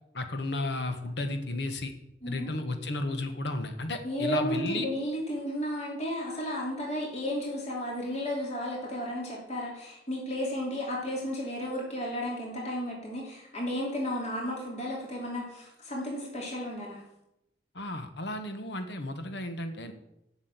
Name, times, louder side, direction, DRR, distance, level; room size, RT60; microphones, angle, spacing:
voice 1, 0.1-1.9 2.3-4.9 17.7-19.9, left 2 dB, 75° left, 7 dB, 1.2 m, -33 dB
voice 2, 4.0-17.0, equal, 40° left, -3 dB, 2.8 m, -33 dB
7.6 x 6.4 x 8.0 m, 0.84 s
head